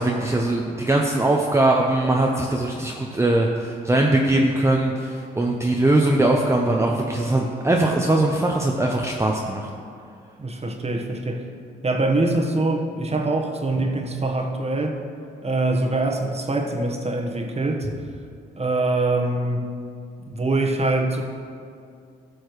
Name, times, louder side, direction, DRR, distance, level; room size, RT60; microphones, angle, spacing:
voice 1, 0.0-9.7, right 2 dB, 15° right, -1 dB, 0.8 m, -21 dB
voice 2, 10.4-11.4 11.8-14.9 15.4-17.9 18.6-19.7 20.3-21.2, right 2 dB, 30° right, 1 dB, 1.3 m, -24 dB
13.5 x 6.4 x 3.2 m, 2.4 s
hypercardioid pair, 45°, 20 cm